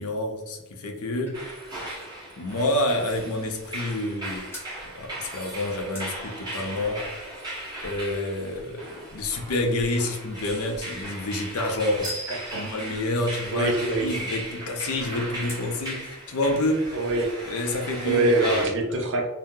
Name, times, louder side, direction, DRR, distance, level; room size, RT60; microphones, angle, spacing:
voice 1, 0.0-1.4 2.4-4.5 4.8-7.1 7.8-13.7 14.0-16.9 17.5-18.7, left 1 dB, 70° left, 3 dB, 0.5 m, -28 dB
sound 1, 0.6-4.2 4.5-4.8 5.9-12.3 15.5-15.8 16.3-16.4 16.6-17.6 17.9-18.0, left 1 dB, 10° left, 0.9 m, -49 dB
sound 2, 1.3-18.7, right 1 dB, 20° right, 1.1 m, -37 dB
voice 2, 12.3-12.7 13.5-14.2 16.9-17.4 18.0-19.3, right 2 dB, 60° right, 2 dB, 0.6 m, -25 dB
2.7 x 2.0 x 3.6 m, 1.0 s
head